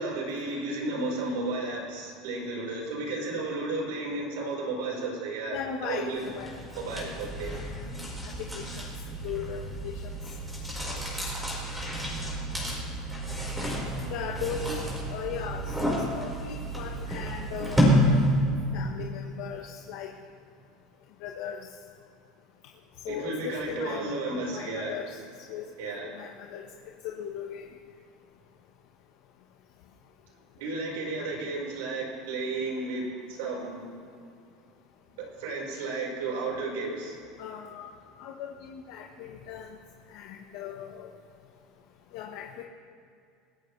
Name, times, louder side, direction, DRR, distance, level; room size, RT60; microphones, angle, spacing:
voice 1, 0.0-6.3 6.8-7.6 14.7-14.8 23.1-24.9 25.8-26.2 30.6-34.0 35.2-37.2, right 2 dB, 90° right, -1 dB, 4.9 m, -33 dB
voice 2, 5.5-6.8 7.5-7.8 8.2-8.9 9.2-10.0 10.8-11.2 14.1-14.7 15.1-17.8 18.7-20.1 21.2-21.7 23.0-24.1 24.5-25.2 25.5-26.7 27.0-27.7 37.4-37.9 38.2-39.8 40.1-41.1 42.1-42.6, left 8 dB, 70° left, 0 dB, 1.3 m, -38 dB
sound 1, 6.2-18.5, equal, 5° right, 4.9 m, -29 dB
21.0 x 16.5 x 3.3 m, 2.5 s
supercardioid pair, 145°, 0 cm